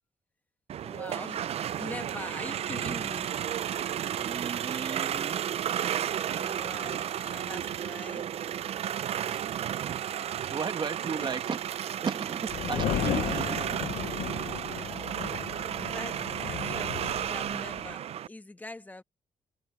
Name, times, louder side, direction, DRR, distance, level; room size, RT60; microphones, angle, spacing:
FX - vehiculo arrancando, 0.7-18.3, right 10 dB, 55° right, 0.4 m, -33 dB
voice 1, 0.8-3.4 6.3-8.3 11.1-11.3 14.7-15.3 15.7-19.0, left 2 dB, 15° left, 1.4 m, -44 dB
voice 2, 4.2-5.4 10.3-11.6 12.0-13.6, right 5 dB, 40° right, 1.1 m, -35 dB
sound 1, 12.5-17.9, left 12 dB, 80° left, 0.5 m, -35 dB
cardioid pair, 140°, 13 cm